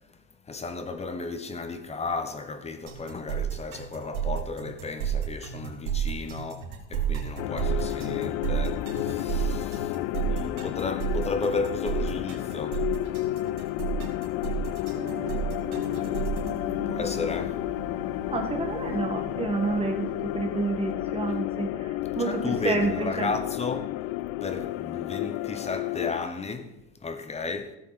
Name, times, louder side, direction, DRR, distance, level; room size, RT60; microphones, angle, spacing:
voice 1, 0.4-12.9 16.9-17.6 22.2-23.9 24.4-27.8, left 3 dB, 15° left, 1.0 m, -34 dB
sound 1, 2.9-16.5, right 10 dB, 90° right, 2.9 m, -31 dB
sound 2, 7.4-26.3, left 17 dB, 55° left, 0.4 m, -31 dB
sound 3, 14.9-20.9, right 3 dB, 45° right, 1.9 m, -42 dB
voice 2, 16.3-17.1 18.3-20.1 20.3-23.3, right 3 dB, 15° right, 1.8 m, -30 dB
16.0 x 7.2 x 4.2 m
supercardioid pair, 130°, 41 cm